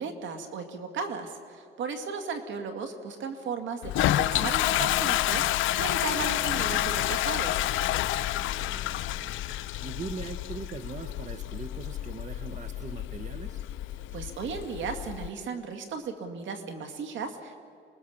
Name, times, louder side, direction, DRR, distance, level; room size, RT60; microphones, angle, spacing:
voice 1, 0.0-7.6 14.1-17.6, right 5 dB, 75° right, 6 dB, 2.4 m, -35 dB
Toilet flush, 3.8-15.3, left 14 dB, 80° left, 0.6 m, -29 dB
voice 2, 8.4-13.6, right 5 dB, 40° right, 9 dB, 1.1 m, -41 dB
27.0 x 20.5 x 7.2 m, 2.4 s
cardioid pair, 90°, 20 cm